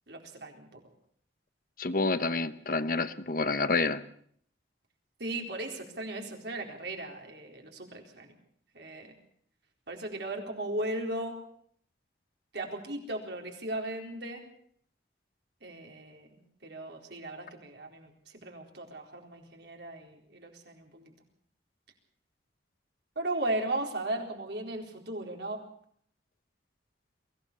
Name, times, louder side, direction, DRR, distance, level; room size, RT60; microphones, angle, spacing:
voice 1, 0.1-0.8 5.2-8.3 8.7-9.1 9.9-11.4 12.5-14.4 15.6-21.1 23.2-25.6, right 1 dB, 75° right, 2 dB, 4.3 m, -37 dB
voice 2, 1.8-4.0, left 3 dB, 50° left, 12 dB, 0.9 m, -28 dB
23.5 x 16.0 x 6.9 m, 0.62 s
head